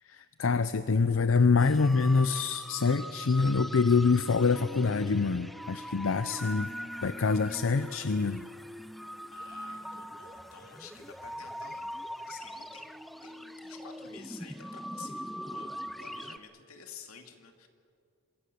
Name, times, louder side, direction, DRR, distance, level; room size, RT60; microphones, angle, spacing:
voice 1, 0.1-6.7 7.0-8.4, left 4 dB, 65° left, 12 dB, 0.6 m, -26 dB
sound 1, 1.6-16.4, equal, ahead, 0.5 m, -41 dB
voice 2, 9.3-11.9 12.2-12.9 13.2-17.7, left 6 dB, 85° left, 4 dB, 2.5 m, -51 dB
26.0 x 22.0 x 6.9 m, 2.4 s
head